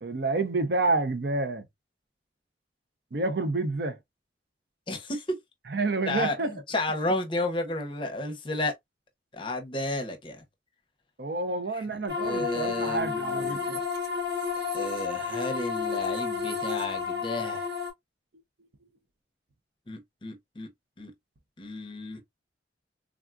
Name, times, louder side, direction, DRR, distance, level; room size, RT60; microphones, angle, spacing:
voice 1, 0.0-1.6 3.1-4.0 5.7-6.5 11.2-13.8, right 3 dB, 60° right, 0.6 m, -28 dB
voice 2, 4.9-5.3 6.1-8.7 9.3-10.4 11.7-13.7 14.7-17.8 19.9-20.7 21.0-21.1 21.6-22.2, left 2 dB, 25° left, 0.7 m, -33 dB
sound 1, 12.1-17.9, left 5 dB, 85° right, 2.3 m, -31 dB
3.6 x 2.3 x 2.4 m
head